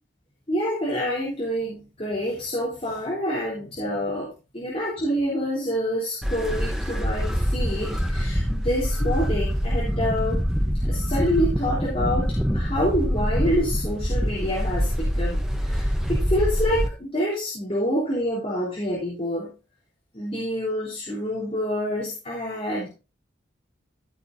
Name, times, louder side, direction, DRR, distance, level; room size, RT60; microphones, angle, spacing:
voice 1, 0.5-4.3 4.5-10.4 10.9-15.4 15.6-19.5 20.1-22.9, equal, 30° left, -7 dB, 3.9 m, -27 dB
sound 1, 6.2-16.9, equal, 5° right, 0.9 m, -25 dB
15.5 x 6.9 x 2.7 m, 0.30 s
head